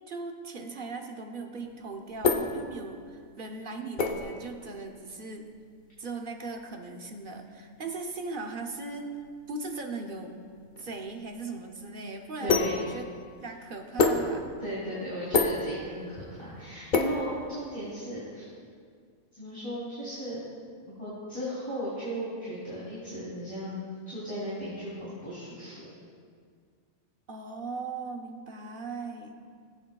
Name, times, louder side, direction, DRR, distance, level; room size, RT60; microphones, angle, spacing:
voice 1, 0.1-5.5 6.0-9.1 9.5-10.4 10.8-13.1 13.4-14.4 14.9-15.0 27.3-29.3, right 3 dB, 50° right, 3 dB, 0.8 m, -38 dB
sound 1, 1.6-18.0, left 4 dB, 45° left, 0.8 m, -32 dB
voice 2, 12.4-12.8 14.6-18.5 19.3-20.4 20.9-23.8 24.1-25.9, equal, 20° left, -11 dB, 3.0 m, -36 dB
18.0 x 8.3 x 2.3 m, 2.1 s
omnidirectional pair, 1.4 m